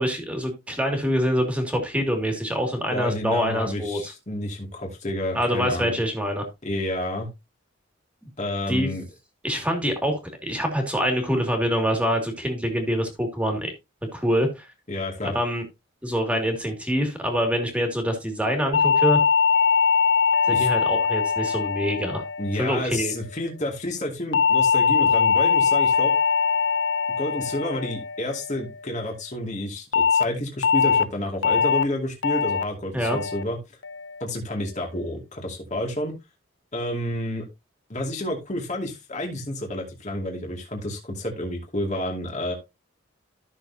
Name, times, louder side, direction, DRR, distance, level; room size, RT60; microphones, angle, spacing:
voice 1, 0.0-4.1 5.3-6.5 8.7-8.9 9.4-13.7 14.1-14.7 15.2-15.6 16.0-19.2 20.5-22.2 22.6-23.1 32.9-33.2, equal, 5° right, 3 dB, 2.3 m, -25 dB
voice 2, 2.9-6.0 6.6-7.3 8.4-9.0 14.9-15.3 20.5-20.7 22.4-26.1 27.2-33.6 34.2-36.1 36.7-37.5 37.9-42.5, left 1 dB, 35° left, 1 dB, 2.4 m, -30 dB
sound 1, 18.7-23.2 24.3-28.8 29.9-30.2 30.6-31.0 31.4-31.8 32.2-32.6 33.0-33.4 33.8-34.2, left 6 dB, 60° left, 0.6 m, -22 dB
14.0 x 6.4 x 2.8 m, 0.23 s
head